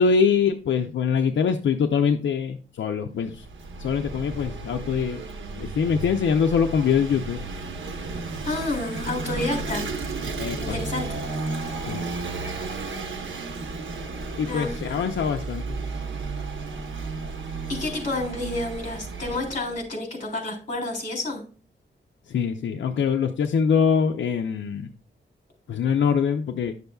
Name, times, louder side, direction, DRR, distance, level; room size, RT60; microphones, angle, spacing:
voice 1, 0.0-3.5 3.8-5.2 5.5-7.4 10.4-10.8 11.9-12.1 14.4-15.8 22.3-24.9 25.7-26.7, left 6 dB, 75° left, 5 dB, 0.5 m, -23 dB
Vehicle / Engine, 3.2-19.8, right 3 dB, 90° right, 0.9 m, -33 dB
voice 2, 8.4-9.8 10.6-11.1 11.6-11.7 14.5-15.1 17.7-21.4, left 2 dB, 40° left, -1 dB, 3.7 m, -30 dB
11.0 x 6.7 x 2.3 m, 0.38 s
wide cardioid pair, 175°, 19 cm